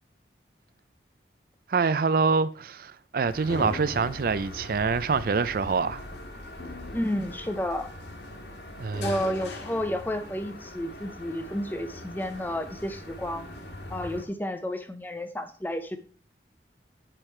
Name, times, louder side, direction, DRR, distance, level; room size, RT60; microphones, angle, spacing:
voice 1, 1.7-6.0 8.8-9.2, right 4 dB, 55° right, 0.4 m, -25 dB
sound 1, 3.3-14.2, left 1 dB, 75° left, 1.5 m, -40 dB
voice 2, 6.9-7.9 8.9-13.5 13.9-16.0, left 1 dB, 10° left, 0.6 m, -31 dB
8.9 x 4.9 x 4.4 m
head